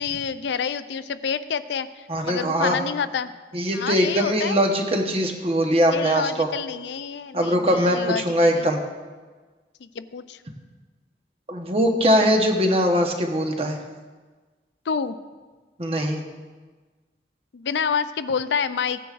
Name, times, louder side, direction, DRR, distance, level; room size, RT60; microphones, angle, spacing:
voice 1, 0.0-3.3 3.7-4.6 5.9-8.7 9.8-10.4 14.9-15.2 17.5-19.0, left 6 dB, 80° left, 13 dB, 0.4 m, -28 dB
voice 2, 2.1-2.8 3.5-6.5 7.3-8.8 11.5-13.8 15.8-16.2, equal, 35° right, 3 dB, 1.0 m, -21 dB
16.5 x 9.8 x 2.5 m, 1.4 s
head